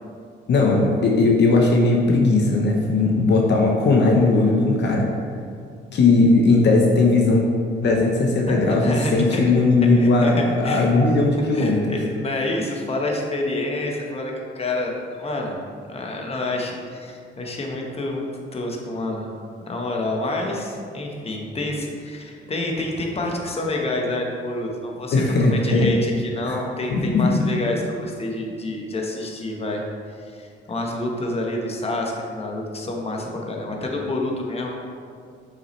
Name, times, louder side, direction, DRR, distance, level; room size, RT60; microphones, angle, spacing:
voice 1, 0.5-5.1 5.9-7.4 7.8-12.0 25.1-25.9 26.5-26.6 26.9-27.5, left 3 dB, 60° left, -1 dB, 0.9 m, -18 dB
voice 2, 8.5-9.4 10.0-10.9 11.2-15.5 15.9-19.3 19.7-25.2 25.5-29.8 30.2-34.8, left 2 dB, 30° left, 0 dB, 1.2 m, -28 dB
7.1 x 6.0 x 3.2 m, 2.2 s
cardioid pair, 90°, 20 cm